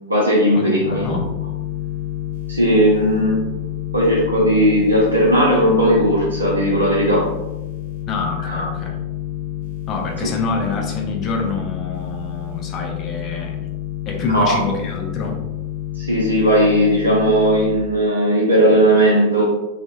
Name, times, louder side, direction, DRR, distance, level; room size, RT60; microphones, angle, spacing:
voice 1, 0.0-1.0 2.5-3.4 3.9-7.2 8.4-8.6 14.3-14.5 16.0-19.4, equal, 80° right, -5 dB, 0.4 m, -16 dB
voice 2, 0.6-1.3 8.1-9.0 9.9-13.7 14.1-15.4, left 3 dB, 30° left, 2 dB, 0.4 m, -26 dB
sound 1, 0.8-17.8, left 12 dB, 60° left, 0.8 m, -29 dB
2.1 x 2.1 x 2.8 m, 1.0 s
figure-of-eight pair, 90°, 0 cm